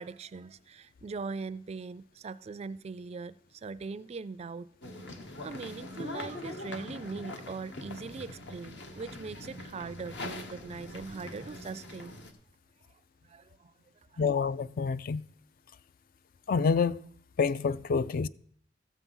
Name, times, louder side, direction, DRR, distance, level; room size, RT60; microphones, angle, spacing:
voice 1, 0.0-4.7 5.4-12.2 13.2-13.7 14.1-14.2, right 4 dB, 35° right, 0.4 m, -41 dB
sound 1, 4.8-12.3, left 2 dB, 65° left, 1.3 m, -43 dB
voice 2, 14.2-15.3 16.5-17.0 17.4-18.3, left 5 dB, 50° left, 0.4 m, -27 dB
14.0 x 7.1 x 5.5 m
head